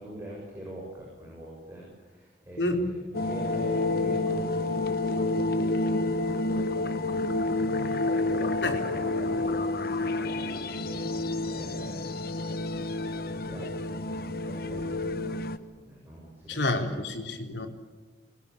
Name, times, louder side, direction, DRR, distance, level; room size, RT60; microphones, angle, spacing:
voice 1, 0.0-17.1, right 1 dB, 15° right, -4 dB, 7.4 m, -44 dB
sound 1, 3.1-15.6, left 2 dB, 60° left, 1.1 m, -29 dB
voice 2, 16.5-17.7, left 2 dB, 85° left, 3 dB, 3.7 m, -28 dB
24.5 x 21.5 x 8.5 m, 1.4 s
head